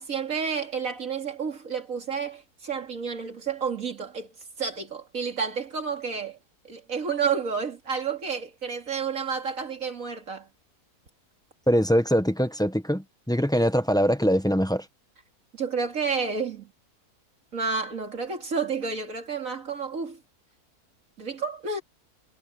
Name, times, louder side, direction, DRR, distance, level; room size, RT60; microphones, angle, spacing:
voice 1, 0.0-4.3 4.6-6.4 6.6-10.5 15.5-16.7 17.5-20.2 21.2-21.8, right 5 dB, 60° right, 2.9 m, -30 dB
voice 2, 11.7-14.9, equal, 5° left, 0.6 m, -23 dB
omnidirectional pair, 1.6 m